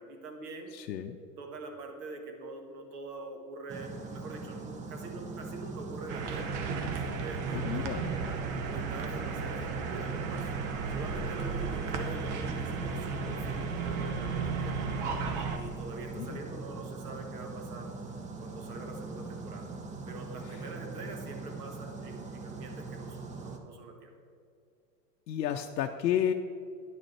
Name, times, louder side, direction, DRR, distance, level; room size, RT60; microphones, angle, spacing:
voice 1, 0.0-0.7 1.2-6.5 6.9-8.4 8.7-10.5 10.9-14.8 15.5-17.9 18.4-19.7 20.1-24.1, right 3 dB, 65° right, 3 dB, 1.6 m, -44 dB
voice 2, 0.7-1.2 7.5-8.0 16.2-16.4 25.3-26.3, left 10 dB, 80° left, 5 dB, 0.6 m, -31 dB
sound 1, 3.7-23.6, right 3 dB, 15° right, 0.6 m, -42 dB
sound 2, 6.1-15.6, right 5 dB, 50° right, 1.1 m, -34 dB
10.0 x 6.2 x 4.4 m, 2.4 s
hypercardioid pair, 105°, 50 cm